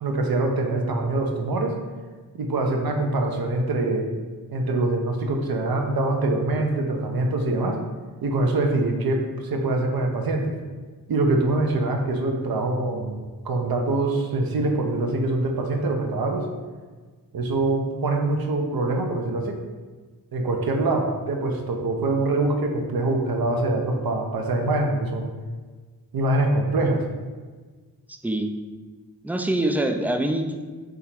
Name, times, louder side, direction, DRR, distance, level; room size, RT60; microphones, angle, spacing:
voice 1, 0.0-1.7 2.3-4.1 4.5-7.8 8.2-10.5 11.1-16.5 17.3-19.6 20.3-25.3 26.1-27.0, right 2 dB, 65° right, 2 dB, 0.8 m, -24 dB
voice 2, 28.1-28.5 29.2-30.7, right 1 dB, 5° right, 5 dB, 0.4 m, -25 dB
3.7 x 2.9 x 4.3 m, 1.4 s
cardioid pair, 45°, 39 cm